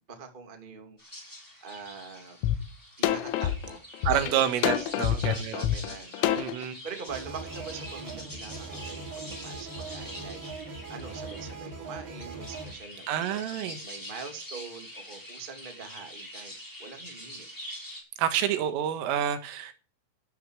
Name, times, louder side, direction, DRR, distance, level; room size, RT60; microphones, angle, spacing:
voice 1, 0.1-1.3 1.6-2.4 3.0-4.4 4.8-4.9 5.5-10.4 10.9-16.5 16.8-17.5, right 5 dB, 15° right, 5 dB, 1.7 m, -44 dB
sound 1, 1.0-18.0, equal, 5° left, 5.7 m, -45 dB
sound 2, 2.4-2.6 3.0-6.6, left 11 dB, 90° left, 3.9 m, -27 dB
voice 2, 4.1-5.6 6.4-6.8 13.1-13.8 18.2-19.7, right 10 dB, 80° right, 9 dB, 4.2 m, -28 dB
sound 3, 7.1-12.7, right 3 dB, 50° right, 3.9 m, -40 dB
13.0 x 12.5 x 4.9 m, 0.35 s
omnidirectional pair, 5.8 m